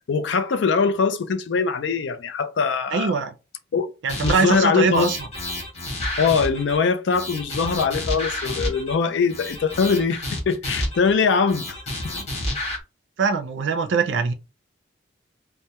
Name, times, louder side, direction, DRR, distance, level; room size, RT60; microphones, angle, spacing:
voice 1, 0.0-3.2 3.7-3.9 4.2-5.1 6.2-11.8, left 5 dB, 70° left, 0.4 m, -22 dB
voice 2, 2.9-3.3 4.0-5.3 13.2-14.3, right 5 dB, 75° right, 0.4 m, -22 dB
sound 1, 4.1-4.6 4.9-6.8 7.1-8.9 9.3-11.1 11.5-12.8, left 1 dB, 35° left, 0.7 m, -30 dB
2.2 x 2.1 x 2.8 m
head